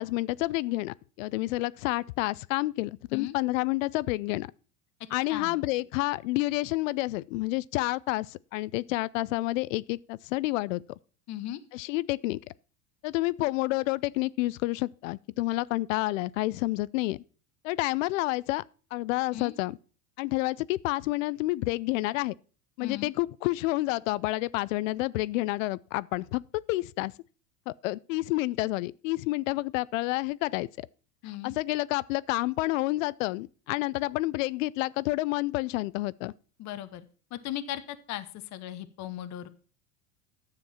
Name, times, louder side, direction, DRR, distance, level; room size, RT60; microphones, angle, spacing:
voice 1, 0.0-4.5 5.1-10.8 11.7-12.4 13.0-17.2 17.6-18.6 18.9-19.8 20.2-22.4 22.8-26.4 26.7-27.1 27.7-30.9 31.4-36.3, left 19 dB, 75° left, 0.5 m, -29 dB
voice 2, 11.3-11.6 19.3-19.5 22.8-23.1 31.2-31.6 36.6-37.0 37.3-39.5, left 12 dB, 45° left, 1.0 m, -37 dB
10.5 x 7.1 x 5.7 m
hypercardioid pair, 95°, 39 cm